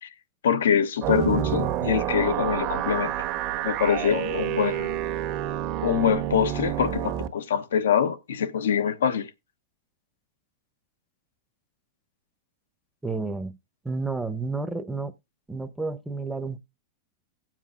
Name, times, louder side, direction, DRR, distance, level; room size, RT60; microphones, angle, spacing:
voice 1, 0.4-3.1 3.6-4.9 5.8-9.3, left 8 dB, 85° left, 0.9 m, -24 dB
sound 1, 1.0-7.3, right 12 dB, 45° right, 1.3 m, -28 dB
voice 2, 13.0-13.6 13.8-15.1 15.5-16.6, right 3 dB, 5° right, 0.9 m, -31 dB
17.5 x 7.5 x 2.5 m
hypercardioid pair, 110°, 0 cm